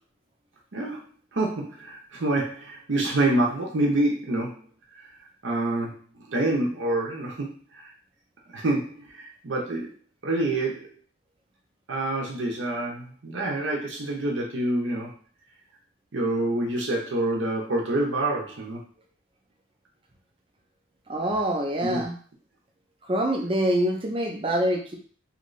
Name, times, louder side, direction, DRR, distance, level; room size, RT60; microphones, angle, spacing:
voice 1, 1.3-4.7 5.4-7.5 7.7-7.9 8.5-9.9 10.2-10.9 11.9-15.1 16.1-18.8 21.8-22.0, right 2 dB, 70° right, -2 dB, 0.7 m, -27 dB
voice 2, 21.1-22.1 23.1-25.0, right 1 dB, 25° right, 1 dB, 0.5 m, -25 dB
2.9 x 2.6 x 3.1 m, 0.43 s
head